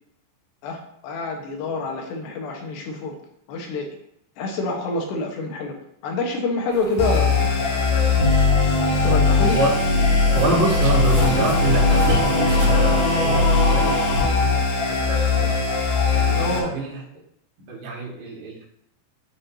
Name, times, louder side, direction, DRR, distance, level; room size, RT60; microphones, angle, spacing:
voice 1, 0.6-3.2 3.5-3.9 4.4-5.8 6.0-7.9 9.0-9.6 16.3-16.7, left 3 dB, 80° left, 2 dB, 3.4 m, -27 dB
sound 1, 6.7-13.9, equal, 15° right, 1.3 m, -31 dB
sound 2, 7.0-16.6, left 3 dB, 50° left, 4.3 m, -19 dB
voice 2, 10.3-15.6 16.1-17.2 17.6-18.6, right 2 dB, 85° right, -4 dB, 4.6 m, -27 dB
13.5 x 5.9 x 2.8 m, 0.73 s
omnidirectional pair, 5.0 m